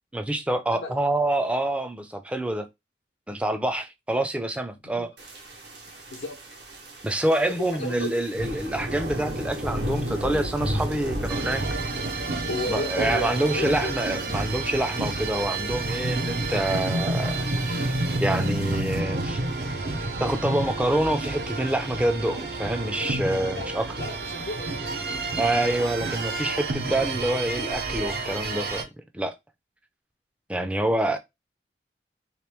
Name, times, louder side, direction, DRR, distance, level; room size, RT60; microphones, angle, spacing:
voice 1, 0.1-2.7 3.3-5.1 7.0-11.6 12.7-17.9 18.2-19.4 20.2-23.9 25.4-28.8 29.1-29.3 30.5-31.2, right 1 dB, 5° right, 0.4 m, -26 dB
sound 1, 5.2-19.0, equal, 80° right, 1.3 m, -35 dB
voice 2, 6.1-6.4 7.4-8.1 12.5-14.0 23.6-23.7 23.9-24.7, left 2 dB, 85° left, 0.6 m, -33 dB
sound 2, 11.3-28.8, right 2 dB, 60° right, 0.6 m, -29 dB
3.0 x 3.0 x 3.3 m
head